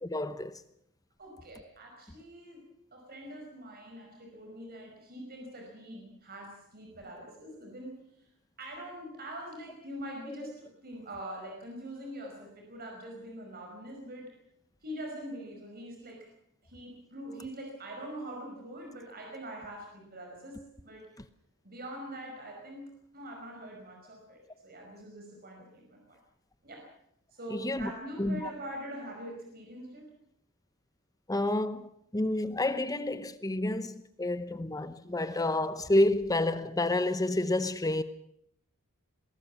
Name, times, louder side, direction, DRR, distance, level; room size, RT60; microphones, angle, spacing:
voice 1, 0.0-0.5 10.3-10.4 27.5-27.9 28.2-28.5 31.3-38.0, left 1 dB, 15° left, 0.9 m, -29 dB
voice 2, 1.2-2.7 2.9-8.0 8.6-14.3 14.8-16.3 16.6-21.0 21.6-26.2 26.6-26.8 27.3-30.1, right 1 dB, 45° right, 5.2 m, -43 dB
21.5 x 18.5 x 7.3 m
head